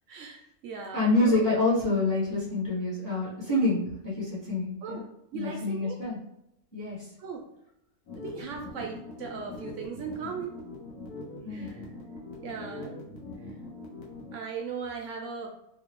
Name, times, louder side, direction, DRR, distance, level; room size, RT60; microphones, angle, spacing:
voice 1, 0.1-1.4 4.8-5.0 5.3-6.0 7.2-7.4 8.1-10.5 11.5-11.9 12.4-13.0 14.3-15.5, right 5 dB, 65° right, 1 dB, 0.8 m, -38 dB
voice 2, 0.9-5.0 5.3-6.2 6.7-7.0 11.4-11.7, left 2 dB, 15° left, -8 dB, 1.1 m, -27 dB
sound 1, 8.1-14.3, left 2 dB, 80° left, 1.3 m, -42 dB
3.1 x 2.6 x 2.9 m, 0.82 s
omnidirectional pair, 1.6 m